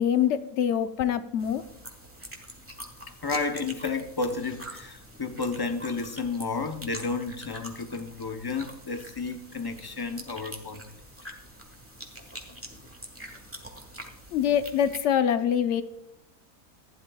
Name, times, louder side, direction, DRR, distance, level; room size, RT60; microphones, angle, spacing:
voice 1, 0.0-1.6 14.3-15.8, left 9 dB, 60° left, 10 dB, 1.0 m, -24 dB
sound 1, 1.4-15.0, equal, 10° right, 1.3 m, -45 dB
voice 2, 3.2-10.9 11.2-11.3 12.5-12.6, left 4 dB, 25° left, 6 dB, 0.5 m, -32 dB
15.5 x 10.5 x 2.3 m, 0.81 s
omnidirectional pair, 1.5 m